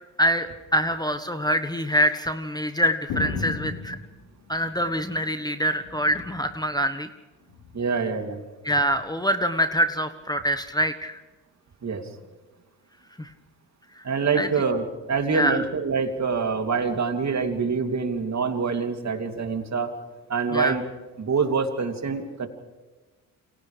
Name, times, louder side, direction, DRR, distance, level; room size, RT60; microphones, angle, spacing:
voice 1, 0.2-4.0 4.5-7.1 8.6-11.2 13.2-13.3 14.0-14.1 14.3-14.5 15.3-15.6 20.5-20.7, equal, 10° left, 9 dB, 1.3 m, -25 dB
sound 1, 3.1-5.3 5.7-6.6 7.5-7.9 8.9-9.0, left 4 dB, 70° left, 3.7 m, -35 dB
voice 2, 7.7-8.4 11.8-12.1 14.0-20.0 20.3-20.8 21.2-22.5, right 5 dB, 40° right, 5 dB, 2.9 m, -25 dB
29.0 x 27.5 x 3.4 m, 1.2 s
hypercardioid pair, 50°, 43 cm